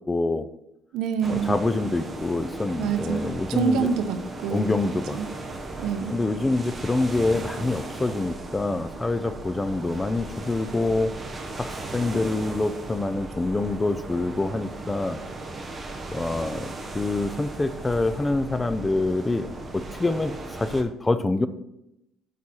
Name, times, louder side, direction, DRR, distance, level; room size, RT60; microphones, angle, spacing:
voice 1, 0.1-0.5 1.3-3.9 4.5-5.2 5.4-5.6 6.1-11.1 11.6-15.2 16.1-19.5 19.7-21.5, left 2 dB, 10° left, 12 dB, 0.4 m, -26 dB
voice 2, 0.9-1.6 2.8-4.7 5.2-5.3 5.8-6.1, right 6 dB, 75° right, 9 dB, 0.8 m, -26 dB
sound 1, 1.2-20.8, right 2 dB, 20° right, 0.9 m, -37 dB
8.6 x 4.2 x 6.2 m, 0.85 s
cardioid pair, 155°, 0 cm